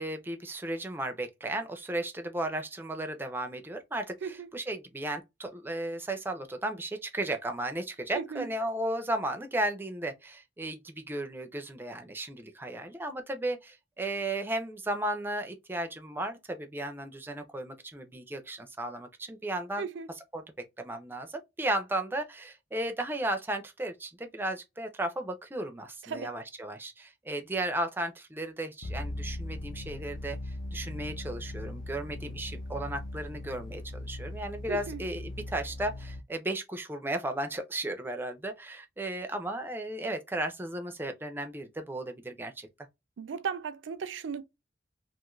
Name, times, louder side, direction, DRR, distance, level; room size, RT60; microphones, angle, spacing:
voice 1, 0.0-19.9 20.3-20.4 20.8-42.7, right 1 dB, 10° right, 0.4 m, -35 dB
voice 2, 8.1-8.5 19.8-20.1 26.0-26.4 34.7-35.0 43.2-44.4, right 6 dB, 85° right, 0.4 m, -36 dB
sound 1, 28.8-36.2, left 1 dB, 50° left, 0.4 m, -39 dB
2.5 x 2.4 x 2.9 m
head